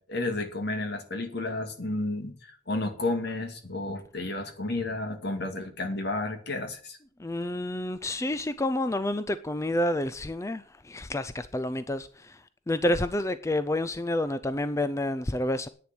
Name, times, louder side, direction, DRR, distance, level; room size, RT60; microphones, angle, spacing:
voice 1, 0.0-7.0, left 2 dB, 60° left, 6 dB, 2.2 m, -32 dB
voice 2, 7.2-12.3 12.7-15.7, left 1 dB, 15° left, 13 dB, 0.4 m, -29 dB
10.5 x 9.4 x 6.1 m, 0.43 s
head